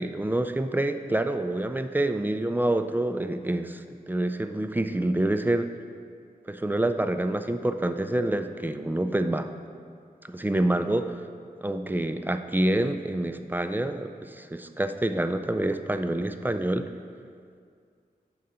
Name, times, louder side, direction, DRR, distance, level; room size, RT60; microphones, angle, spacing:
voice 1, 0.0-5.7 6.5-9.5 10.3-11.2 11.6-16.9, right 1 dB, 10° right, 8 dB, 0.3 m, -27 dB
7.4 x 3.8 x 5.5 m, 2.2 s
cardioid pair, 55°, 16 cm